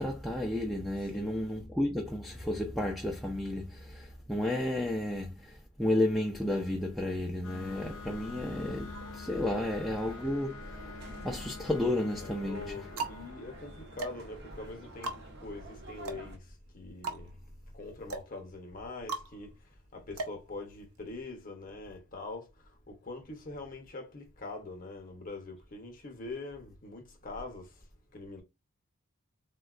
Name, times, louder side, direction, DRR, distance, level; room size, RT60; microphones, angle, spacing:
voice 1, 0.0-10.8 11.2-12.8, left 1 dB, ahead, 0.4 m, -32 dB
voice 2, 1.0-1.7 12.1-16.4 16.7-17.3 17.7-19.6 19.9-22.5 22.9-27.7 28.1-28.4, left 3 dB, 40° left, 0.7 m, -43 dB
sound 1, 7.4-14.8, left 6 dB, 70° left, 0.4 m, -48 dB
sound 2, 7.6-16.4, right 2 dB, 50° right, 0.7 m, -50 dB
sound 3, 12.6-21.2, right 3 dB, 85° right, 0.6 m, -41 dB
3.8 x 2.2 x 2.4 m
head